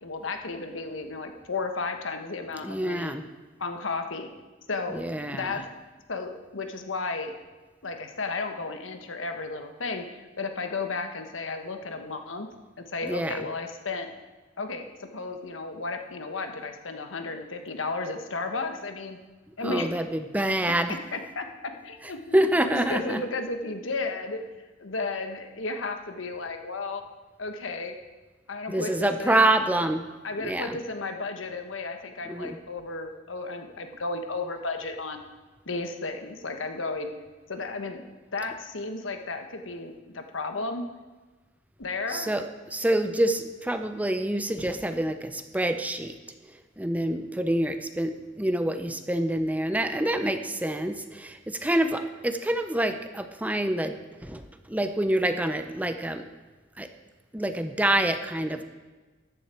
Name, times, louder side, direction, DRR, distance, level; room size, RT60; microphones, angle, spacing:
voice 1, 0.0-3.1 3.6-4.3 4.7-5.0 5.3-5.6 6.1-7.3 7.8-12.5 12.9-14.1 14.6-19.2 19.6-19.9 21.1-22.4 22.7-24.4 24.8-27.0 27.4-27.9 28.5-29.5 30.2-35.2 35.7-37.1 37.5-40.9 41.8-42.3, left 3 dB, 90° left, 6 dB, 1.3 m, -33 dB
voice 2, 2.6-3.2 4.9-5.5 13.0-13.4 19.6-21.0 22.3-23.2 28.7-30.0 30.4-30.8 32.3-32.6 42.1-42.4 42.7-46.2 46.8-54.4 54.7-56.3 56.8-56.9 57.3-58.6, right 1 dB, 10° right, 8 dB, 0.6 m, -26 dB
14.0 x 10.5 x 4.4 m, 1.3 s
head